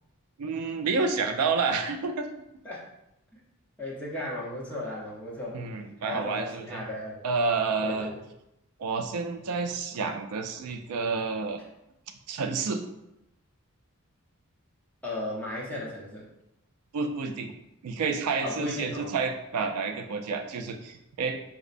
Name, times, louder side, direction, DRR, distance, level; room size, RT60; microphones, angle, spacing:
voice 1, 0.4-2.3 5.5-6.8 7.2-8.1 8.8-11.6 12.3-12.8 16.9-17.5 17.8-21.4, right 4 dB, 80° right, 6 dB, 0.4 m, -29 dB
voice 2, 3.8-5.6 6.0-7.2 7.8-8.2 15.0-16.3 18.4-19.1, left 1 dB, 5° left, -5 dB, 0.7 m, -35 dB
5.0 x 2.0 x 2.5 m, 0.85 s
head